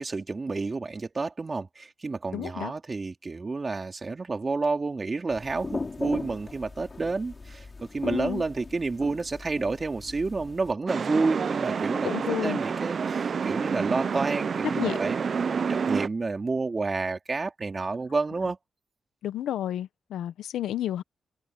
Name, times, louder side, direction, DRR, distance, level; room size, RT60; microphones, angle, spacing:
voice 1, 0.0-7.7 7.9-18.6, right 3 dB, 40° right, 3.6 m, -30 dB
voice 2, 2.3-2.7 8.0-8.4 12.0-12.6 14.8-15.0 19.2-21.0, left 12 dB, 90° left, 0.9 m, -31 dB
sound 1, 5.3-10.7, left 3 dB, 40° left, 5.8 m, -39 dB
sound 2, 10.9-16.1, right 6 dB, 60° right, 0.8 m, -28 dB
supercardioid pair, 50°, 0 cm